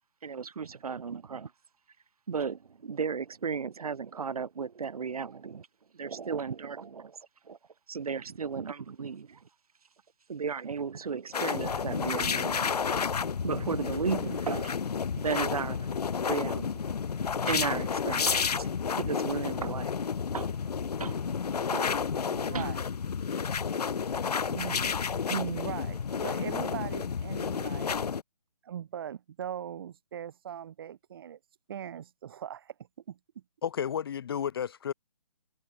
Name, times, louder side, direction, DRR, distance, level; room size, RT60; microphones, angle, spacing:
voice 1, 0.2-1.5 2.3-5.7 6.0-7.2 7.5-7.6 7.9-9.4 10.3-12.9 13.4-14.8 15.2-15.9 16.3-16.7 17.4-18.7 19.0-19.9 20.3-20.5 21.0-21.2 21.7-21.9 22.5-22.7, right 6 dB, 65° right, 1.0 m, -34 dB
sound 1, 11.3-28.2, left 6 dB, 80° left, 0.6 m, -31 dB
voice 2, 22.1-22.8 24.4-25.0 25.3-28.0 28.6-31.4 31.7-32.7 33.1-33.2, right 9 dB, 35° right, 0.6 m, -40 dB
voice 3, 33.6-34.9, left 8 dB, 40° left, 0.6 m, -32 dB
figure-of-eight pair, 150°, 20 cm